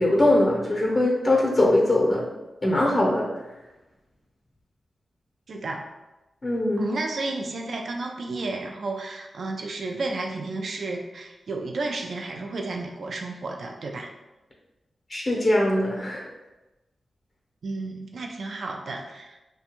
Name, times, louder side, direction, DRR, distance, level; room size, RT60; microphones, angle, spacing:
voice 1, 0.0-2.3 2.6-3.3 6.4-6.9 15.1-16.3, left 1 dB, 45° left, -3 dB, 0.7 m, -21 dB
voice 2, 5.5-5.8 6.8-14.1 17.6-19.4, right 3 dB, 70° right, 2 dB, 0.3 m, -32 dB
2.4 x 2.2 x 2.8 m, 1.0 s
cardioid pair, 55°, 0 cm